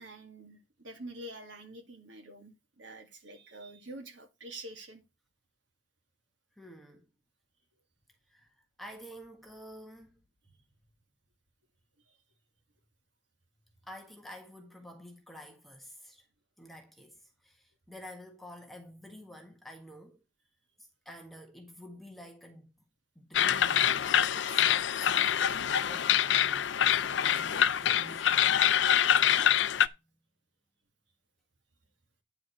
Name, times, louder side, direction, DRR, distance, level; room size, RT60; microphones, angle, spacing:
voice 1, 0.0-5.0, right 1 dB, 85° right, 2.3 m, -47 dB
voice 2, 6.5-7.1 8.3-10.2 13.8-16.3 16.6-20.2 20.8-22.7 23.1-29.0, equal, ahead, 1.4 m, -50 dB
sound 1, 23.3-29.9, left 9 dB, 80° left, 0.5 m, -25 dB
9.7 x 4.9 x 6.0 m
head